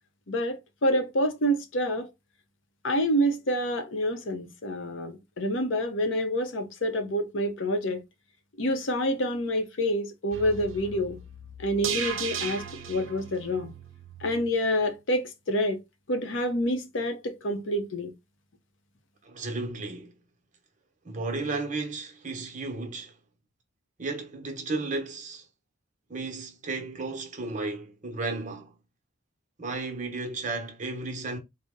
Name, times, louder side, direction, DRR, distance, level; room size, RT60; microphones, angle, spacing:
voice 1, 0.3-2.1 2.8-8.0 8.6-11.2 11.6-12.6 12.9-13.7 14.2-15.8 16.1-18.1, equal, 65° left, 0.7 m, -27 dB
sound 1, 10.3-14.5 14.8-14.9, right 7 dB, 75° right, 0.6 m, -37 dB
voice 2, 19.2-20.1 21.0-23.2 24.0-25.5 26.1-28.7 29.6-31.4, right 3 dB, 40° right, 0.8 m, -34 dB
4.0 x 2.0 x 3.6 m
head